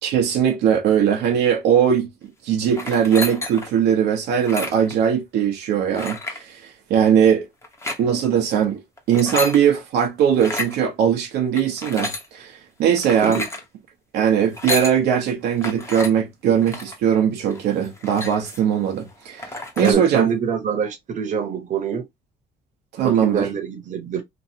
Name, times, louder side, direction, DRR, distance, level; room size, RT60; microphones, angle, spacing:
voice 1, 0.0-2.1 2.4-7.5 8.0-8.8 9.1-13.4 14.1-20.3 22.9-23.5, right 8 dB, 75° right, 0.8 m, -20 dB
sound 1, 2.7-3.8 4.4-4.9 6.0-6.4 7.6-8.0 9.0-9.6 10.3-10.7 11.5-12.3 13.0-13.6 14.4-15.0 15.6-16.1 16.6-17.0 17.5-17.6 17.8-18.7 19.1-19.2 19.4-19.9, left 2 dB, 15° left, 0.9 m, -30 dB
voice 2, 19.8-22.0 23.0-24.2, right 7 dB, 45° right, 1.0 m, -25 dB
3.1 x 2.6 x 2.7 m
cardioid pair, 110°, 17 cm